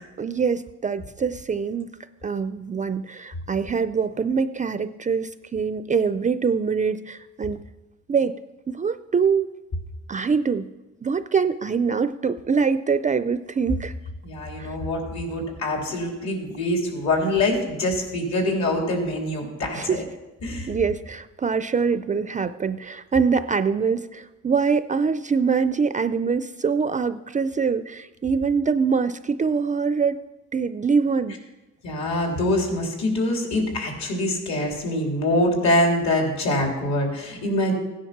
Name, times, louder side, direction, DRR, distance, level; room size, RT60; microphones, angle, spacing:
voice 1, 0.2-2.0 2.2-7.6 8.1-8.3 8.7-9.5 10.1-10.7 11.0-13.9 14.6-14.8 19.7-20.0 20.7-30.2 30.5-31.4, right 5 dB, 25° right, 12 dB, 0.4 m, -24 dB
voice 2, 14.2-20.0 20.4-20.7 31.8-37.7, left 1 dB, 65° left, 1 dB, 3.6 m, -24 dB
16.0 x 10.0 x 5.9 m, 1.1 s
cardioid pair, 135°, 30 cm